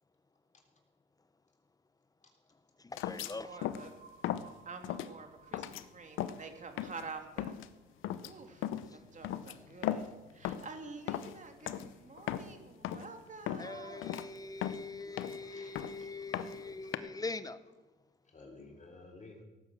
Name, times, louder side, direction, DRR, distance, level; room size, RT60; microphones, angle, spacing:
voice 1, 2.5-3.7 8.8-9.2 13.6-17.7, left 3 dB, 20° left, 15 dB, 0.8 m, -43 dB
sound 1, 3.0-3.3 3.6-3.9 4.2-4.5 4.8-5.1 5.5-5.8 6.2-6.4 6.8-7.1 7.4-7.7 8.0-8.3 8.6-8.9 9.2-10.2 10.4-10.8 11.1-11.4 11.7-11.9 12.2-12.6 12.8-13.1 13.5-13.7 14.0-14.3 14.6-15.5 15.8-16.0 16.3-17.0, left 11 dB, 90° left, 0.8 m, -37 dB
voice 2, 3.2-3.9 4.6-7.6 8.2-14.1, right 4 dB, 40° right, 5 dB, 2.7 m, -48 dB
sound 2, 3.4-9.1, right 5 dB, 55° right, 5.9 m, -60 dB
voice 3, 15.4-16.4 16.8-16.9 18.2-19.4, left 3 dB, 35° left, 2 dB, 3.4 m, -54 dB
17.5 x 9.6 x 7.6 m, 1.1 s
cardioid pair, 90°, 20 cm